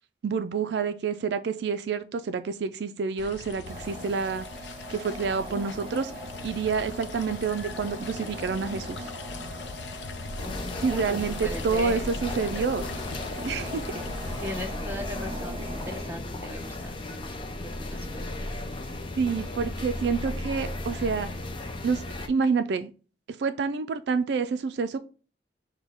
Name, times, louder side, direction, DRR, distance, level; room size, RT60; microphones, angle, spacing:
voice 1, 0.2-4.5 4.9-6.1 6.4-9.1 10.8-12.9 13.5-13.8 19.2-21.3 21.8-22.0 22.3-22.9 23.4-25.0, right 5 dB, 65° right, 10 dB, 0.3 m, -28 dB
sound 1, 3.2-14.6, left 4 dB, 85° left, 0.5 m, -40 dB
sound 2, 3.6-16.1, right 1 dB, 30° right, 1.4 m, -41 dB
sound 3, 10.4-22.3, left 2 dB, 30° left, 0.5 m, -35 dB
voice 2, 10.4-12.1 14.4-17.4 17.6-18.5, left 1 dB, 15° right, 1 dB, 0.9 m, -39 dB
6.2 x 2.2 x 3.4 m, 0.36 s
head